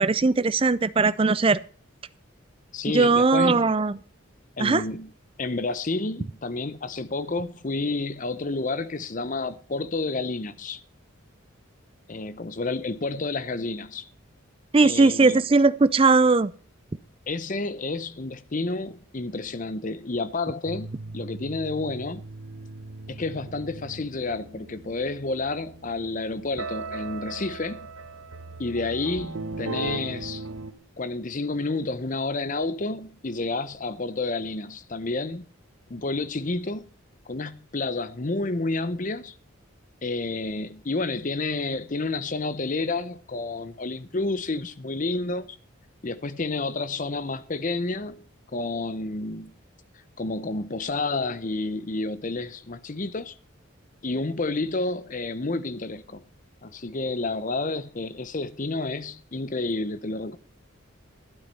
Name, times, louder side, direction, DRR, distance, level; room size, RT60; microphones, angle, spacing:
voice 1, 0.0-1.6 2.9-4.0 4.6-4.8 14.7-16.5, right 3 dB, 25° right, 0.4 m, -19 dB
voice 2, 2.7-3.6 4.6-5.1 5.4-10.8 12.1-14.1 14.8-15.4 17.3-20.9 21.1-22.2 23.1-27.9 28.6-30.5 31.0-35.4 35.9-36.8 37.3-39.3 40.0-45.6 46.0-48.2 48.5-49.5 50.2-53.3 54.0-56.2 56.6-60.4, left 3 dB, 40° left, 0.7 m, -30 dB
sound 1, 20.7-30.7, right 3 dB, 80° right, 0.9 m, -38 dB
12.5 x 8.6 x 5.6 m
head